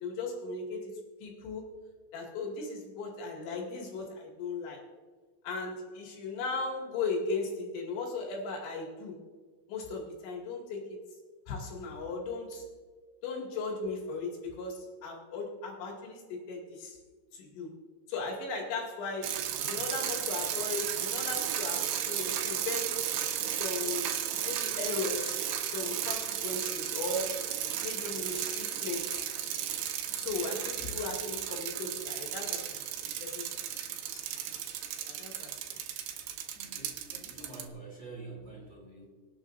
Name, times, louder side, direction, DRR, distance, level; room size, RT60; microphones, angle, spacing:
voice 1, 0.0-0.9 1.2-1.7 2.1-4.8 5.4-9.2 9.7-11.0 11.5-12.7 13.2-17.0 17.3-17.7 18.1-19.4 19.7-23.0 23.6-27.5 27.8-29.2 30.2-33.5 34.1-34.2 35.0-35.5, left 3 dB, 75° left, -1 dB, 4.5 m, -37 dB
sound 1, 19.2-37.7, right 10 dB, 80° right, 3.2 m, -34 dB
voice 2, 36.5-39.1, right 3 dB, 15° right, -4 dB, 4.0 m, -47 dB
25.5 x 8.5 x 2.6 m, 1.5 s
omnidirectional pair, 5.3 m